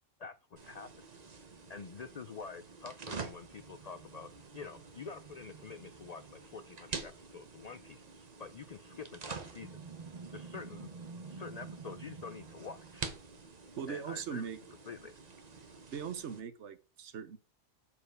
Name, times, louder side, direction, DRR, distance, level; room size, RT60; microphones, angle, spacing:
voice 1, 0.2-1.0 1.7-9.8 10.3-10.9 11.3-13.1 13.9-14.5 14.9-15.1, left 5 dB, 65° left, 0.4 m, -47 dB
sound 1, 0.6-16.4, right 4 dB, 35° right, 1.0 m, -47 dB
voice 2, 13.8-14.6 15.9-17.4, right 7 dB, 65° right, 1.1 m, -40 dB
7.3 x 4.4 x 5.2 m
omnidirectional pair, 1.3 m